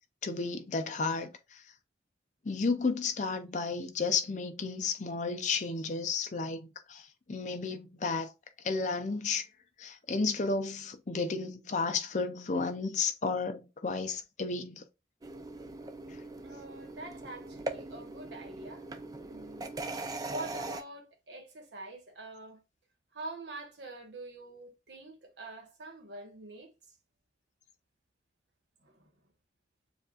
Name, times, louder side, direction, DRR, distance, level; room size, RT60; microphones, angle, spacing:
voice 1, 0.2-1.3 2.5-7.0 7.3-8.3 8.6-9.4 9.8-14.8, left 4 dB, 40° left, 0.5 m, -32 dB
sound 1, 15.2-20.8, right 2 dB, 20° right, 0.3 m, -41 dB
voice 2, 16.4-18.9 19.2-19.7 20.3-22.6 23.1-26.7 28.8-29.1, right 2 dB, 70° right, 1.2 m, -45 dB
6.9 x 2.5 x 2.3 m
head